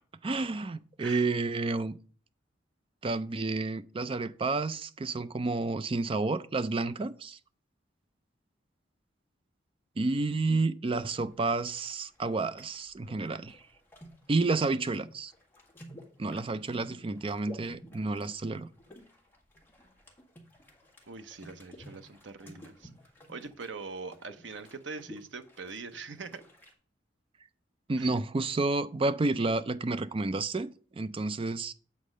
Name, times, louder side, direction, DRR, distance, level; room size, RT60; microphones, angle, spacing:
voice 1, 0.2-2.0 3.0-7.4 10.0-13.6 14.3-15.3 16.2-18.7 27.9-30.7 30.9-31.7, right 3 dB, 30° right, 0.4 m, -30 dB
sound 1, 10.9-26.7, equal, 10° left, 1.8 m, -53 dB
voice 2, 21.1-22.9 23.3-26.4 28.0-28.1, right 4 dB, 80° right, 0.8 m, -42 dB
8.5 x 4.2 x 6.4 m
head